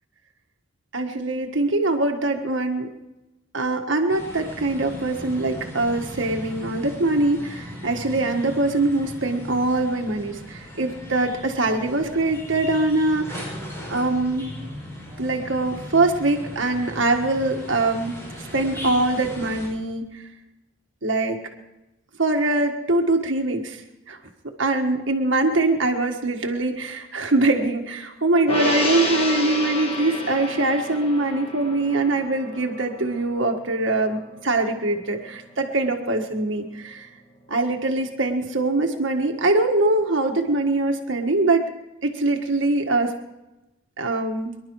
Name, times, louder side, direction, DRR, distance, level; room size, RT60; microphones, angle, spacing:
voice 1, 0.9-2.9 3.5-13.5 13.9-14.5 15.2-20.3 21.0-21.4 22.2-23.8 24.1-24.2 24.6-37.1 37.5-41.7 42.0-43.1 44.0-44.5, right 2 dB, 75° right, 3 dB, 1.6 m, -23 dB
sound 1, 4.1-19.7, left 1 dB, 15° left, 5.7 m, -38 dB
Gong, 28.5-35.1 35.4-35.6, left 2 dB, 30° left, 1.9 m, -30 dB
24.0 x 11.5 x 4.7 m, 0.99 s
head